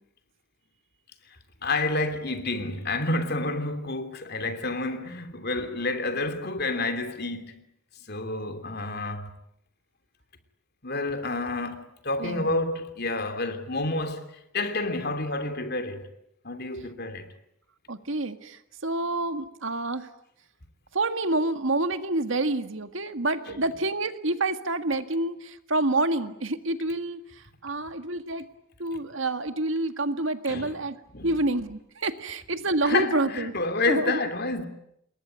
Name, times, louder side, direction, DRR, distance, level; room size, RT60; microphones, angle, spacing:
voice 1, 1.6-7.6 8.1-9.3 10.8-16.1 16.4-17.3 30.5-30.7 31.1-31.3 32.8-34.6, left 2 dB, 50° left, 3.1 m, -29 dB
voice 2, 17.9-20.1 20.9-28.5 28.8-33.5 33.9-34.2, right 2 dB, 70° right, 1.9 m, -28 dB
28.0 x 22.0 x 9.4 m
head